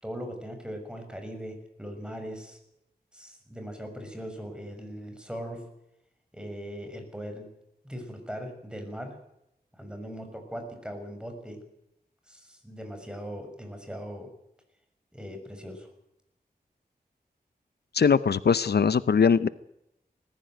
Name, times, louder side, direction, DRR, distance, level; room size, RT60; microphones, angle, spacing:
voice 1, 0.0-2.6 3.1-5.6 6.3-7.5 7.8-9.2 9.7-11.6 12.3-14.3 15.1-15.9, equal, 5° right, 5 dB, 6.4 m, -39 dB
voice 2, 17.9-19.5, left 6 dB, 80° left, 16 dB, 0.7 m, -21 dB
20.5 x 14.5 x 9.3 m, 0.81 s
wide cardioid pair, 70°, 17 cm